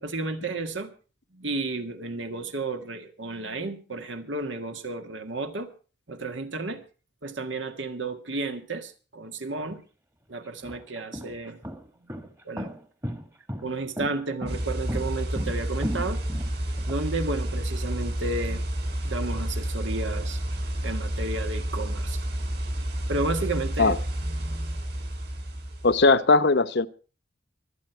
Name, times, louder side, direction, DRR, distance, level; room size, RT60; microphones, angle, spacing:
voice 1, 0.0-0.9 1.3-5.7 6.1-6.8 7.2-9.8 10.3-11.6 12.0-12.7 13.6-16.2 16.9-18.7 19.0-20.4 20.8-22.2 23.1-24.0 24.2-24.8, right 2 dB, 80° right, 1.8 m, -32 dB
sound 1, 9.7-9.8 10.5-17.0, equal, 15° right, 1.4 m, -35 dB
sound 2, 14.5-26.1, right 1 dB, 60° right, 6.5 m, -30 dB
voice 2, 25.8-26.9, left 3 dB, 60° left, 0.8 m, -19 dB
24.5 x 8.6 x 4.6 m
head